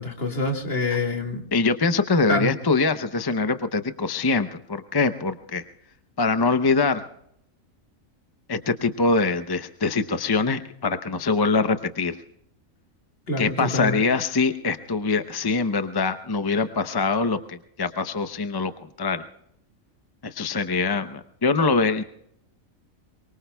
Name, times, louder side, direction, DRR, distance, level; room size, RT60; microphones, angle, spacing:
voice 1, 0.0-1.4 2.3-2.5 13.3-14.0, left 2 dB, 45° left, 3 dB, 2.1 m, -26 dB
voice 2, 1.5-5.6 6.2-7.0 8.5-12.2 13.4-18.7 19.0-19.2 20.2-22.0, left 4 dB, 25° left, 9 dB, 0.5 m, -23 dB
24.0 x 23.0 x 2.3 m, 0.73 s
omnidirectional pair, 1.4 m